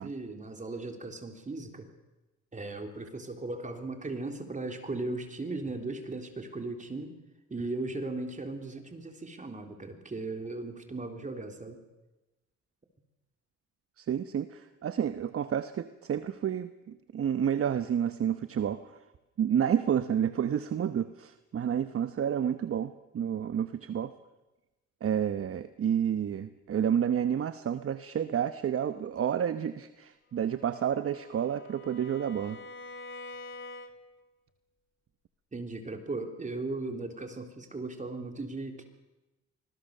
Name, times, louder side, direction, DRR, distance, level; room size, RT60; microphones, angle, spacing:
voice 1, 0.0-1.9 2.5-7.2 7.5-11.8 35.5-38.8, right 2 dB, 25° right, 5 dB, 3.6 m, -37 dB
voice 2, 14.0-19.0 19.4-24.1 25.0-32.6, right 9 dB, 50° right, 12 dB, 0.9 m, -30 dB
Bowed string instrument, 30.4-34.2, left 2 dB, 40° left, 2.6 m, -46 dB
25.5 x 20.5 x 6.7 m, 1.0 s
cardioid pair, 90°, 30 cm